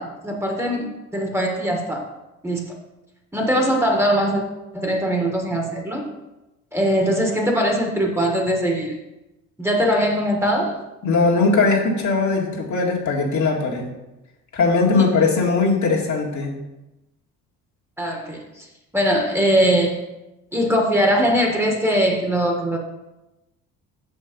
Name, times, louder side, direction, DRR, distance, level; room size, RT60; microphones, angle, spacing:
voice 1, 0.0-2.1 2.4-2.7 3.3-4.4 4.7-6.1 6.7-8.9 9.6-10.8 15.0-15.1 18.0-18.7 18.9-20.0 20.5-22.8, equal, 5° right, 1 dB, 1.7 m, -21 dB
voice 2, 11.0-13.9 14.5-16.5, left 4 dB, 55° left, -2 dB, 2.0 m, -19 dB
6.5 x 5.5 x 5.3 m, 0.99 s
supercardioid pair, 70°, 34 cm